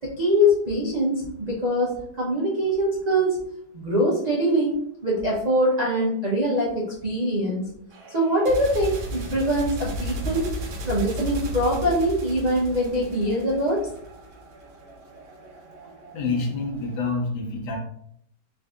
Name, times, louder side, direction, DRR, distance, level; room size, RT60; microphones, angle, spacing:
voice 1, 0.0-3.4 3.7-4.7 5.0-7.7 8.1-10.4 10.8-13.9, equal, 55° right, -5 dB, 0.4 m, -23 dB
sound 1, 7.9-17.1, right 1 dB, 70° right, 1.4 m, -35 dB
voice 2, 16.1-17.8, left 3 dB, 70° left, 1 dB, 1.4 m, -27 dB
3.7 x 2.6 x 3.5 m, 0.70 s
omnidirectional pair, 1.9 m